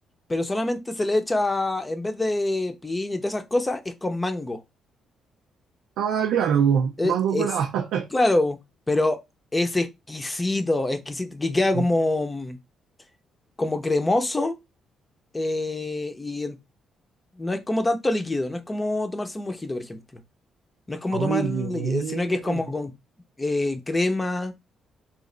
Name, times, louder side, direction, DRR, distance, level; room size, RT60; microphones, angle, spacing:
voice 1, 0.3-4.6 7.0-7.5 8.1-8.6 8.9-9.2 9.5-12.6 13.6-14.6 15.3-16.6 17.4-20.0 20.9-22.9 23.4-24.5, left 2 dB, 20° left, 0.7 m, -25 dB
voice 2, 6.0-8.1 11.7-11.8 21.1-22.6, right 8 dB, 90° right, 0.5 m, -24 dB
3.1 x 2.5 x 3.8 m
cardioid pair, 90°, 0 cm